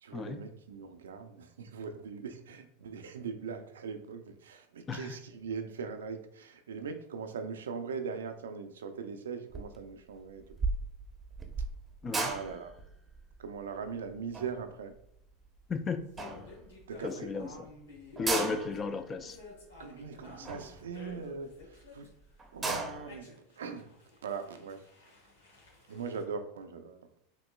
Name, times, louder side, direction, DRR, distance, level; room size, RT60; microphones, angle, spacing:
voice 1, 0.0-10.4 12.2-12.7 13.4-14.9 16.9-17.6 18.2-18.5 19.8-22.1 22.5-23.9 24.2-24.8 25.9-27.1, right 5 dB, 80° right, 8 dB, 0.4 m, -40 dB
sound 1, 9.5-9.9 10.1-15.7 16.2-16.9 17.4-17.5 17.6-17.7 18.0-21.6 22.1-22.2 22.4-23.2, right 3 dB, 20° right, 0.7 m, -37 dB
voice 2, 15.7-16.0 17.0-17.7 18.2-19.4, left 4 dB, 25° left, 9 dB, 0.4 m, -34 dB
sound 2, 16.2-22.1 22.6-26.2, left 3 dB, 80° left, 1.3 m, -51 dB
5.1 x 2.9 x 2.2 m, 0.76 s
hypercardioid pair, 90°, 0 cm